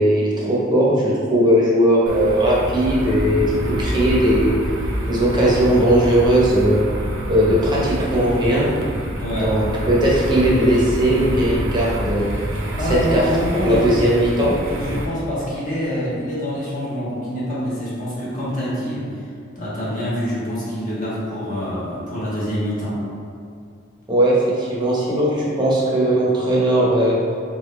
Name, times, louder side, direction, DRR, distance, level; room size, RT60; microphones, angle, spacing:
voice 1, 0.0-4.5 5.1-6.8 7.3-8.7 9.4-12.4 13.1-13.2 13.6-14.5 24.1-27.2, right 1 dB, 20° right, -6 dB, 1.0 m, -18 dB
sound 1, 2.1-15.1, equal, 90° right, 0.6 m, -27 dB
voice 2, 9.2-9.6 12.8-13.8 14.6-19.3 19.5-23.0, equal, 40° left, -8 dB, 1.4 m, -26 dB
4.6 x 3.5 x 3.1 m, 2.3 s
head